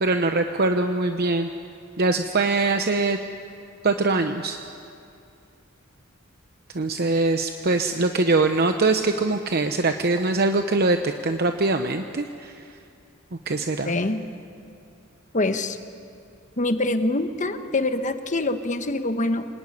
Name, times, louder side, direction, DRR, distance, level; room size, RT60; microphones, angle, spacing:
voice 1, 0.0-1.5 2.0-3.2 3.8-4.6 6.7-12.7 13.5-13.9, right 3 dB, 50° right, 6 dB, 0.9 m, -22 dB
voice 2, 13.8-14.2 15.3-15.8 16.6-19.5, left 2 dB, 40° left, 8 dB, 1.3 m, -25 dB
26.5 x 19.0 x 9.8 m, 2.5 s
head